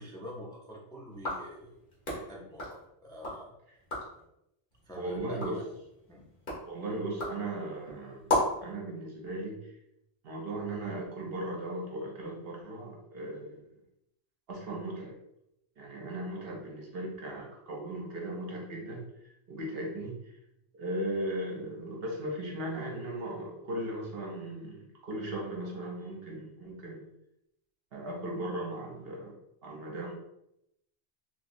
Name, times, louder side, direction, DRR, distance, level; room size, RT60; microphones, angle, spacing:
voice 1, 0.0-1.7 2.1-3.5 4.9-5.7 6.1-6.2, equal, 5° left, -3 dB, 0.5 m, -45 dB
sound 1, 1.1-3.4 3.7-4.2 4.7-8.7, left 1 dB, 45° left, 1.3 m, -36 dB
voice 2, 5.0-5.5 6.7-8.3 8.6-9.6 10.2-13.6 14.5-15.1 15.8-19.0 19.5-20.2 20.7-27.0 27.9-29.3 29.6-30.1, right 1 dB, 60° right, 0 dB, 0.9 m, -37 dB
3.3 x 3.0 x 2.6 m, 0.82 s
omnidirectional pair, 1.2 m